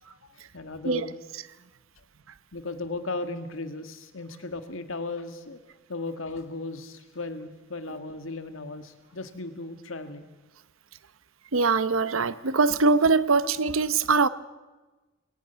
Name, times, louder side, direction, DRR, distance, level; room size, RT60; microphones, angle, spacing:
voice 1, 0.0-1.2 2.5-5.6 5.9-10.3, left 2 dB, 75° left, 9 dB, 1.8 m, -36 dB
voice 2, 11.5-14.3, right 4 dB, 80° right, 16 dB, 0.9 m, -22 dB
21.5 x 18.0 x 6.9 m, 1.2 s
head